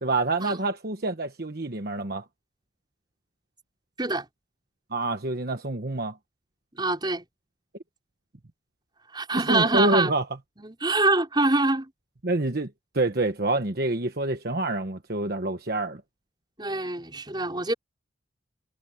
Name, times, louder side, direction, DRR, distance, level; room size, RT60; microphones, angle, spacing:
voice 1, 0.0-2.2 4.9-6.2 9.5-10.2 12.2-16.0, right 2 dB, 55° right, 1.3 m, -27 dB
voice 2, 6.8-7.3 9.1-10.1 10.6-11.9 16.6-17.7, right 2 dB, 25° right, 5.3 m, -25 dB
head